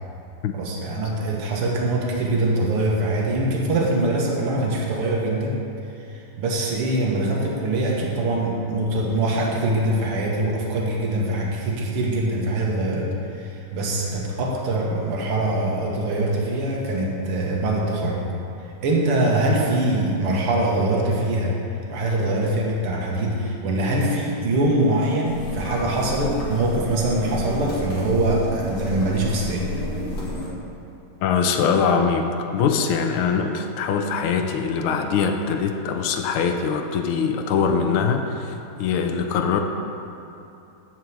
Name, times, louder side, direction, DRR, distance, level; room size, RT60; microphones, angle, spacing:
voice 1, 0.5-5.6 6.0-18.3 18.6-21.6 21.9-29.7, right 1 dB, 85° right, -2 dB, 2.2 m, -23 dB
sound 1, 25.2-30.5, left 1 dB, 50° left, 2.6 m, -31 dB
voice 2, 31.2-39.6, left 6 dB, 80° left, 4 dB, 1.6 m, -22 dB
12.0 x 4.7 x 7.9 m, 2.8 s
omnidirectional pair, 2.4 m